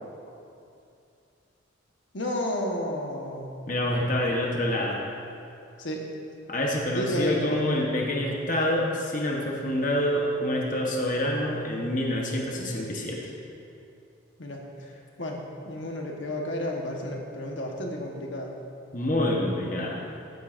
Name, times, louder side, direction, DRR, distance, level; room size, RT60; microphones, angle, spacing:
voice 1, 2.1-3.5 5.8-6.0 6.9-7.6 14.4-14.6 15.2-18.5, left 1 dB, 65° left, 0 dB, 1.3 m, -31 dB
voice 2, 3.7-5.0 6.5-13.3 18.9-20.0, left 1 dB, 40° left, -1 dB, 1.1 m, -27 dB
14.5 x 9.3 x 2.6 m, 2.6 s
head